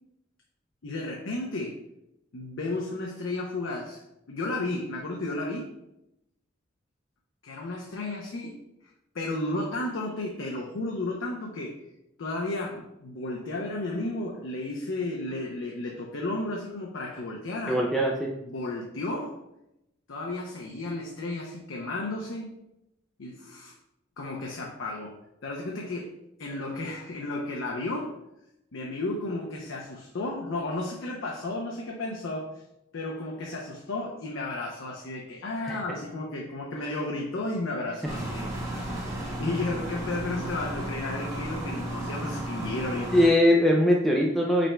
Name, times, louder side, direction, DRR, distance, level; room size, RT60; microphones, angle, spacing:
voice 1, 0.8-1.8 2.3-4.0 4.3-5.7 7.4-8.6 9.1-11.8 12.2-17.8 18.5-19.4 20.1-22.6 23.2-23.7 24.2-25.2 25.4-26.1 26.4-28.1 28.7-32.6 32.9-38.5 38.7-38.9 39.4-43.2, left 2 dB, 70° left, -1 dB, 0.6 m, -33 dB
voice 2, 17.7-18.3 35.6-35.8 43.1-44.7, left 1 dB, ahead, -2 dB, 0.3 m, -21 dB
sound 1, 38.1-43.3, right 1 dB, 15° right, 1.1 m, -34 dB
5.0 x 4.4 x 2.2 m, 0.85 s
head